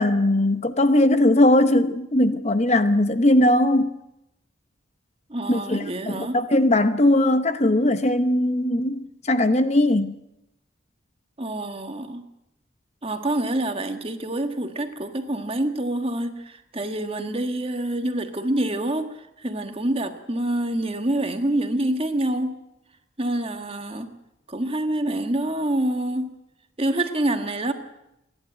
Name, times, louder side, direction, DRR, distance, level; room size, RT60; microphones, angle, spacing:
voice 1, 0.0-4.0 5.5-10.2, left 1 dB, 35° left, 0.8 m, -19 dB
voice 2, 5.3-6.4 11.4-12.2 13.0-22.6 23.2-24.1 24.5-26.4 26.8-27.7, right 1 dB, 30° right, 1.6 m, -26 dB
28.5 x 11.5 x 9.1 m
head